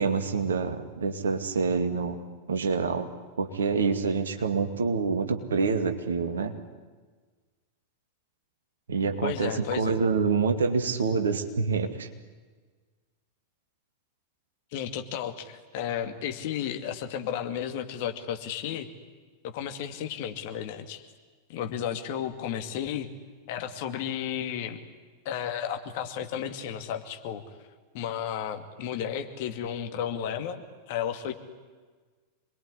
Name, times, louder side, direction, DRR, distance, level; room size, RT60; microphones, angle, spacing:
voice 1, 0.0-2.2 2.5-3.1 3.4-6.5 8.9-12.1, right 5 dB, 65° right, 7 dB, 2.4 m, -27 dB
voice 2, 9.2-10.0 14.7-18.9 19.5-21.0 21.5-23.1 23.5-24.8 25.2-27.4 27.9-31.3, left 9 dB, 50° left, 7 dB, 2.4 m, -33 dB
26.5 x 21.5 x 10.0 m, 1.4 s
figure-of-eight pair, 90°, 0 cm